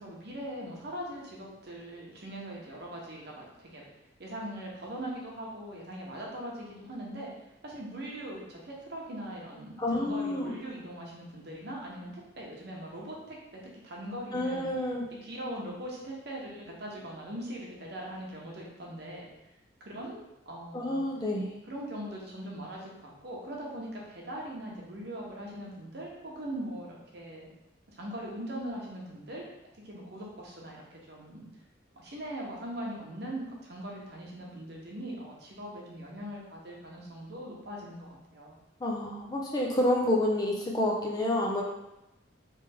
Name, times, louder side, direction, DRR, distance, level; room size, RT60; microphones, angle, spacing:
voice 1, 0.0-3.8 4.2-7.3 7.6-14.6 15.2-19.3 19.8-20.2 20.5-21.0 21.7-27.5 28.0-29.5 29.8-31.5 32.0-38.5, right 1 dB, 55° right, -2 dB, 0.9 m, -41 dB
voice 2, 9.8-10.5 14.3-15.0 20.7-21.5 38.8-41.6, left 1 dB, 20° left, -2 dB, 0.5 m, -28 dB
3.3 x 3.3 x 3.4 m, 0.91 s
head